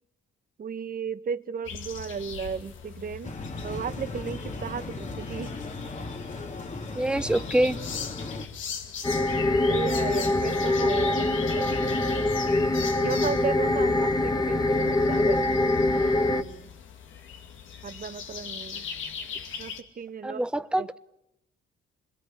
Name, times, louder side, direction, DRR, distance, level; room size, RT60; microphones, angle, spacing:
voice 1, 0.6-3.3 3.6-5.5 9.7-11.7 12.9-16.7 17.8-18.9 19.6-20.4 20.8-21.0, right 7 dB, 45° right, 1.4 m, -35 dB
sound 1, 1.6-19.8, left 6 dB, 80° left, 2.5 m, -40 dB
sound 2, 3.2-8.5, left 3 dB, 40° left, 2.6 m, -36 dB
voice 2, 6.9-7.8 20.2-21.0, right 1 dB, 5° right, 1.0 m, -25 dB
sound 3, 9.0-16.4, left 2 dB, 20° left, 1.5 m, -24 dB
27.0 x 21.5 x 9.9 m
cardioid pair, 90°, 20 cm